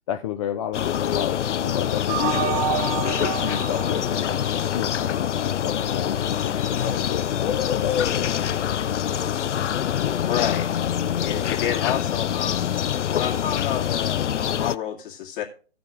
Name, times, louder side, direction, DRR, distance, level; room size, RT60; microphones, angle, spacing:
voice 1, 0.1-4.4 4.7-9.0, left 10 dB, 30° left, 4 dB, 0.6 m, -32 dB
sound 1, 0.7-14.8, left 9 dB, 90° left, 0.5 m, -25 dB
sound 2, 2.1-5.2, right 10 dB, 30° right, 0.9 m, -29 dB
voice 2, 10.2-10.7 11.2-12.7 13.1-15.4, left 10 dB, 50° left, -1 dB, 2.4 m, -29 dB
16.0 x 6.0 x 3.5 m, 0.39 s
hypercardioid pair, 135°, 35 cm